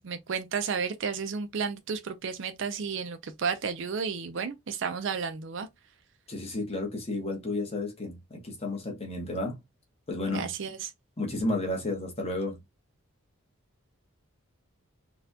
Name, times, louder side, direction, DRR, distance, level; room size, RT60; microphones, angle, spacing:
voice 1, 0.0-5.7 10.3-10.9, right 5 dB, 55° right, 0.4 m, -32 dB
voice 2, 6.3-9.6 10.1-10.5 11.2-12.6, left 2 dB, 30° left, 1.0 m, -32 dB
4.1 x 2.3 x 2.7 m
head